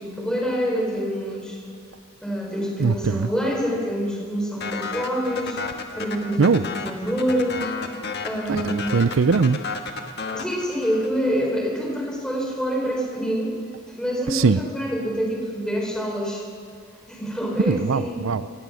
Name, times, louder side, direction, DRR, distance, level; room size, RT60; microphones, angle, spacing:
voice 1, 0.0-1.6 2.2-5.6 5.9-7.6 8.2-9.0 10.3-13.5 13.9-16.5 17.1-18.3, equal, 5° left, -1 dB, 4.1 m, -26 dB
voice 2, 2.8-3.3 6.4-6.6 8.5-9.6 14.3-14.6 17.7-18.6, right 4 dB, 70° right, 14 dB, 0.5 m, -21 dB
sound 1, 4.6-11.3, left 4 dB, 50° left, 1.5 m, -32 dB
27.5 x 16.0 x 6.4 m, 2.1 s
head